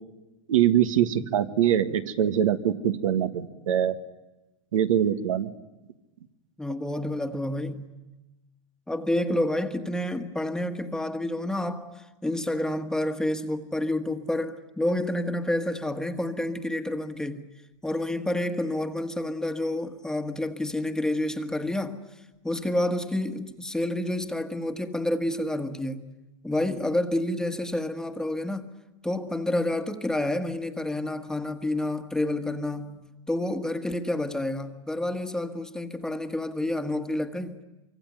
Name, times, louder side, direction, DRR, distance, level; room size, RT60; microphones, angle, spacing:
voice 1, 0.5-3.9 4.7-5.5, right 10 dB, 85° right, 1.7 m, -23 dB
voice 2, 6.6-7.9 8.9-17.5 17.8-22.0 22.4-26.1 26.4-28.7 29.0-37.6, left 1 dB, 5° left, 1.4 m, -29 dB
25.0 x 25.0 x 9.2 m
supercardioid pair, 130°, 17 cm